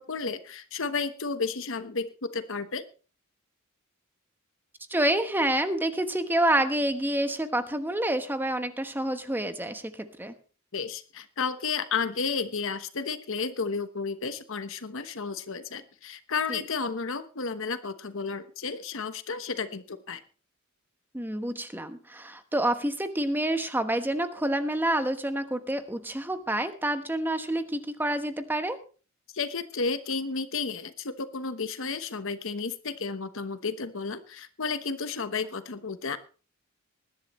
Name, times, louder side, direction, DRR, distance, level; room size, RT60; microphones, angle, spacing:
voice 1, 0.0-2.8 10.7-20.2 29.3-36.2, left 4 dB, 65° left, 11 dB, 1.1 m, -32 dB
voice 2, 4.9-10.3 16.5-16.6 21.1-28.8, right 1 dB, 10° right, 9 dB, 1.1 m, -28 dB
20.5 x 11.0 x 3.1 m, 0.37 s
head